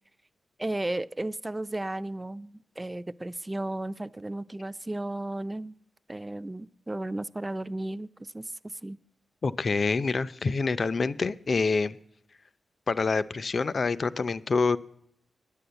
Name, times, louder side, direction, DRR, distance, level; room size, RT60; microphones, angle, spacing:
voice 1, 0.6-5.8 6.1-9.0, right 1 dB, 15° right, 16 dB, 0.4 m, -34 dB
voice 2, 9.4-12.0 12.9-14.8, left 4 dB, 45° left, 15 dB, 0.5 m, -26 dB
10.0 x 10.0 x 7.9 m, 0.73 s
cardioid pair, 90°, 0 cm